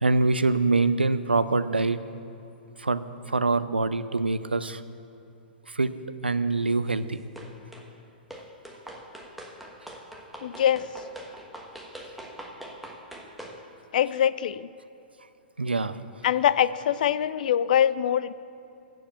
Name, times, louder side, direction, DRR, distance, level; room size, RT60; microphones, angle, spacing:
voice 1, 0.0-2.0 2.8-4.8 5.7-5.9 6.2-7.2 15.6-16.0, right 3 dB, 85° right, 13 dB, 0.5 m, -24 dB
sound 1, 7.4-7.9 8.3-13.6, right 1 dB, ahead, 1.3 m, -43 dB
voice 2, 10.4-10.8 13.9-14.7 16.2-18.3, left 10 dB, 55° left, 17 dB, 0.4 m, -23 dB
15.0 x 5.0 x 7.7 m, 2.8 s
figure-of-eight pair, 110°, 5 cm